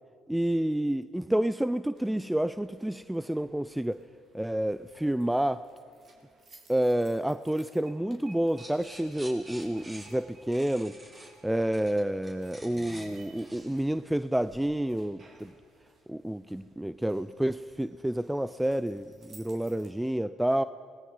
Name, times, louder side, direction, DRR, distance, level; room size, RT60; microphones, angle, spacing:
voice 1, 0.3-4.0 4.3-5.6 6.7-11.0 11.4-15.5 16.1-20.6, right 1 dB, 5° right, 13 dB, 0.5 m, -29 dB
sound 1, 1.9-20.1, right 3 dB, 45° right, 4.0 m, -59 dB
sound 2, 8.6-14.7, right 1 dB, 20° right, 4.6 m, -48 dB
26.0 x 19.5 x 5.6 m, 2.3 s
supercardioid pair, 80°, 0 cm